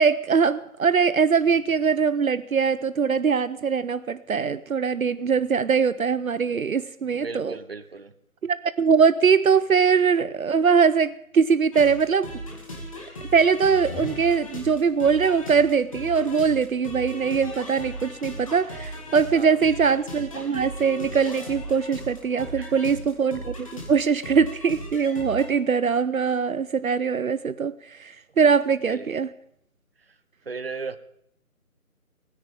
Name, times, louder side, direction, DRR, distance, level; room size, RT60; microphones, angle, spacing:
voice 1, 0.0-7.6 8.4-12.3 13.3-29.3, right 6 dB, 70° right, 15 dB, 0.7 m, -22 dB
voice 2, 7.1-8.1 19.3-19.6 22.4-22.8 28.9-29.1 30.5-31.0, right 4 dB, 40° right, 13 dB, 0.9 m, -36 dB
sound 1, 11.7-25.5, equal, 25° left, 2.4 m, -37 dB
29.5 x 10.0 x 3.6 m, 0.73 s
figure-of-eight pair, 170°, 43 cm